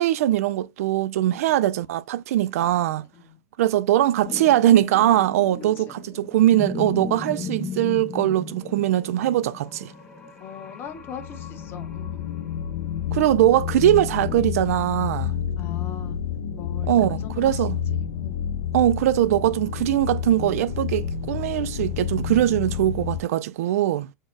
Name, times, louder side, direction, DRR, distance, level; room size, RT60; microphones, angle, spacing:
voice 1, 0.0-3.1 3.6-9.9 13.1-15.3 16.9-17.8 18.7-24.1, right 13 dB, 70° right, 0.3 m, -21 dB
sound 1, 4.2-14.4, left 4 dB, 10° left, 1.3 m, -37 dB
voice 2, 10.4-12.4 15.6-16.2 16.5-18.5, left 7 dB, 25° left, 1.0 m, -41 dB
sound 2, 11.0-23.2, left 8 dB, 80° left, 0.6 m, -29 dB
4.5 x 2.1 x 4.5 m
supercardioid pair, 150°, 8 cm